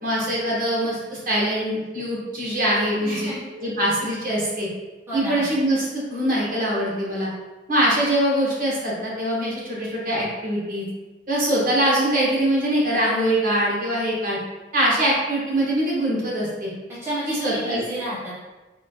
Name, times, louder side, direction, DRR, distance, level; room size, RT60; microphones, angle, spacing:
voice 1, 0.0-3.3 3.6-4.7 5.1-7.3 7.7-10.8 11.3-14.4 14.7-16.7 17.4-17.8, right 1 dB, 45° right, -6 dB, 1.1 m, -23 dB
voice 2, 3.0-3.4 5.1-5.6 17.0-18.4, right 1 dB, 15° right, -10 dB, 0.6 m, -30 dB
4.1 x 2.3 x 2.7 m, 1.2 s
head